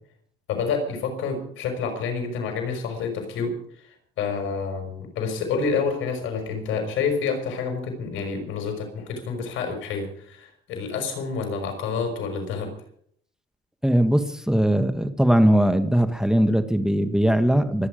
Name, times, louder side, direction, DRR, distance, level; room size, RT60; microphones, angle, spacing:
voice 1, 0.5-12.7, left 5 dB, 85° left, 4 dB, 5.6 m, -28 dB
voice 2, 13.8-17.9, right 1 dB, 5° right, 8 dB, 1.6 m, -20 dB
25.0 x 9.7 x 5.1 m, 0.63 s
cardioid pair, 90°, 20 cm